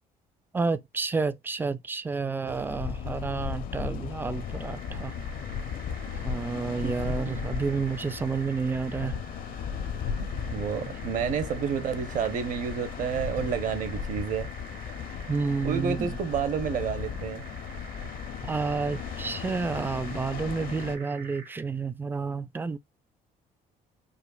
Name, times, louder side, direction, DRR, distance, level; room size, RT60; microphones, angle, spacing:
voice 1, 0.5-5.1 6.2-9.1 15.3-16.1 18.4-22.8, right 4 dB, 10° right, 0.3 m, -30 dB
sound 1, 2.5-21.0, left 7 dB, 60° left, 0.6 m, -36 dB
sound 2, 4.2-21.6, right 4 dB, 80° right, 1.7 m, -48 dB
voice 2, 6.8-7.4 10.2-14.5 15.6-17.4, right 7 dB, 50° right, 0.8 m, -30 dB
5.1 x 2.4 x 2.3 m
cardioid pair, 110°, 17 cm